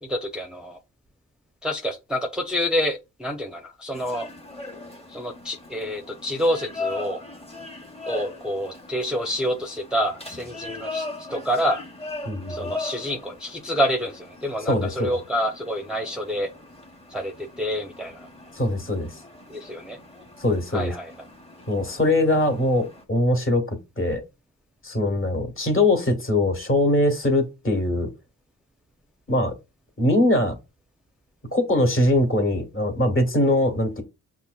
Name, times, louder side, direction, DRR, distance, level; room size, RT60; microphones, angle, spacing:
voice 1, 0.1-0.8 1.6-4.3 5.1-7.2 8.1-11.8 12.5-16.5 17.1-18.3 19.5-20.0 20.7-21.1, equal, ahead, 0.6 m, -27 dB
sound 1, 3.9-23.0, left 2 dB, 15° left, 1.1 m, -39 dB
voice 2, 12.2-12.7 14.7-15.1 18.5-19.2 20.4-20.9 21.7-24.2 24.8-28.1 29.3-29.5 30.0-30.5 31.5-34.0, left 1 dB, 35° left, 1.3 m, -22 dB
5.4 x 2.5 x 2.3 m
supercardioid pair, 45°, 36 cm